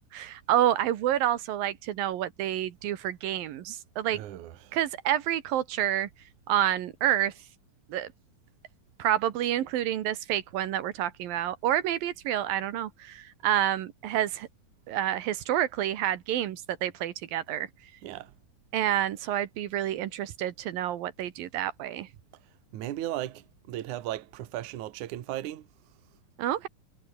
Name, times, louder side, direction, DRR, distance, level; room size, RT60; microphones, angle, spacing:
voice 1, 0.1-4.2 4.7-6.1 6.5-7.3 7.9-8.1 9.0-14.5 14.9-17.7 18.7-22.1 26.4-26.7, right 12 dB, 80° right, 3.1 m, -28 dB
voice 2, 4.1-4.8 18.0-18.3 22.7-25.7, right 13 dB, 65° right, 2.6 m, -36 dB
omnidirectional pair, 4.1 m